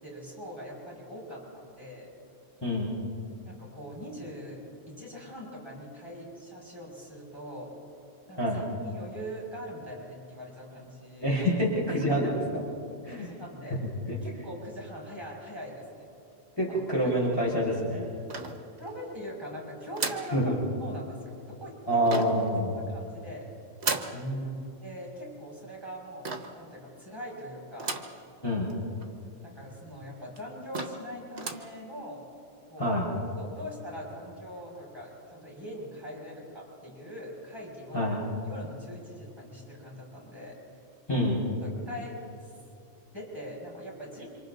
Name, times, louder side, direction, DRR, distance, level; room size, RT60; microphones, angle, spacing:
voice 1, 0.0-2.1 3.4-7.7 8.3-11.5 11.9-12.2 13.1-13.8 14.2-16.1 16.7-16.8 18.8-20.5 20.8-22.1 22.9-23.5 24.8-26.3 26.6-28.0 29.4-32.2 32.7-32.8 33.4-38.2 38.4-40.6 41.6-42.5 43.1-44.3, equal, 20° right, -4 dB, 6.7 m, -42 dB
voice 2, 11.2-12.4 13.0-13.3 14.1-14.2 16.6-18.0 20.3-20.6 21.9-22.8 24.1-24.6 28.4-28.7 32.8-33.1 37.9-38.2 41.1-41.4, equal, 20° left, -6 dB, 5.3 m, -27 dB
sound 1, 18.3-19.0 19.9-20.4 22.0-22.5 23.8-24.2 26.2-26.6 27.8-28.2 28.7-28.8 29.0-29.1 29.9-30.0 30.4-30.5 30.7-31.1 31.3-31.7, right 3 dB, 60° right, 1.7 m, -34 dB
30.0 x 26.5 x 4.1 m, 2.5 s
omnidirectional pair, 1.3 m